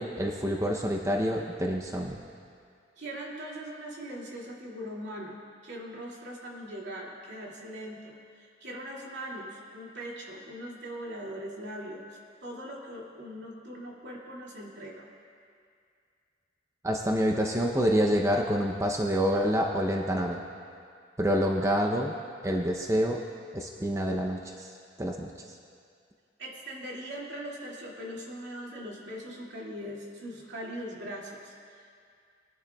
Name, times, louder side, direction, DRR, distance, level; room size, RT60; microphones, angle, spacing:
voice 1, 0.0-2.2 16.8-20.4 21.2-22.1 22.4-23.2 23.5-24.7 25.0-25.5, equal, 15° right, 1 dB, 0.6 m, -27 dB
voice 2, 3.0-12.1 12.4-15.1 26.4-31.9, equal, 75° right, -4 dB, 2.3 m, -40 dB
22.0 x 11.0 x 2.3 m, 2.3 s
head